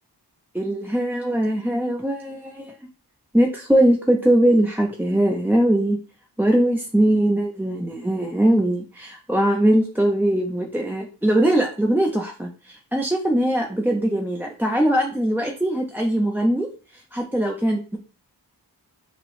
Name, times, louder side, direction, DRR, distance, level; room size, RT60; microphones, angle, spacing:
voice 1, 0.5-2.7 3.3-6.0 6.4-16.7 16.9-18.0, right 1 dB, 5° right, 0 dB, 0.5 m, -21 dB
5.8 x 2.1 x 3.1 m, 0.36 s
wide cardioid pair, 70°, 42 cm